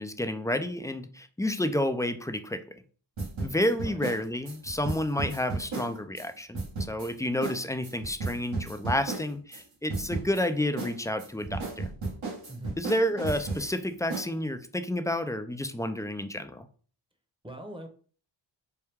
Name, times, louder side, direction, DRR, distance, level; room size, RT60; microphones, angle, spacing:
voice 1, 0.0-2.8 3.4-11.9 12.8-16.7, left 1 dB, 10° left, 9 dB, 0.3 m, -30 dB
sound 1, 3.2-6.3 6.5-7.1 7.4-7.6 7.8-9.6 9.9-10.4 10.8-13.7 14.1-14.3, right 3 dB, 80° right, 1.6 m, -34 dB
voice 2, 17.4-17.9, right 1 dB, 10° right, 5 dB, 0.8 m, -41 dB
4.5 x 2.3 x 3.4 m, 0.42 s
cardioid pair, 60°, 47 cm